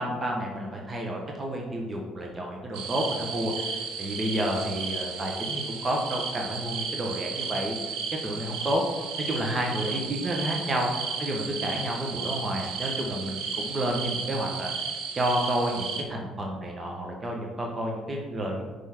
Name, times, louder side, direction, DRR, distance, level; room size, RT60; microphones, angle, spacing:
voice 1, 0.0-8.8 9.2-14.9 15.2-18.6, right 1 dB, 30° right, 0 dB, 1.1 m, -30 dB
sound 1, 2.7-16.0, right 5 dB, 75° right, 0.8 m, -34 dB
4.9 x 4.6 x 5.8 m, 1.4 s
supercardioid pair, 70°, 0 cm